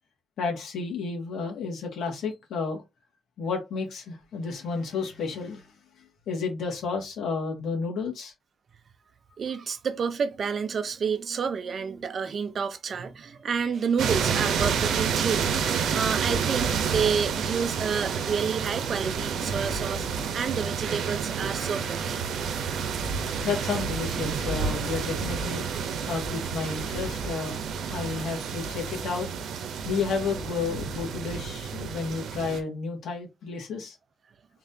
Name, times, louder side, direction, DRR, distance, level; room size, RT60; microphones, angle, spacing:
voice 1, 0.4-2.8 3.4-5.7 6.3-8.3 23.4-25.7 26.1-27.6 27.9-29.3 29.9-34.0, left 4 dB, 75° left, 1.9 m, -31 dB
voice 2, 9.4-20.1 20.3-22.2, right 6 dB, 50° right, 0.6 m, -29 dB
sound 1, 14.0-32.6, right 6 dB, 85° right, 0.8 m, -29 dB
4.0 x 3.9 x 2.7 m
cardioid pair, 120°, 0 cm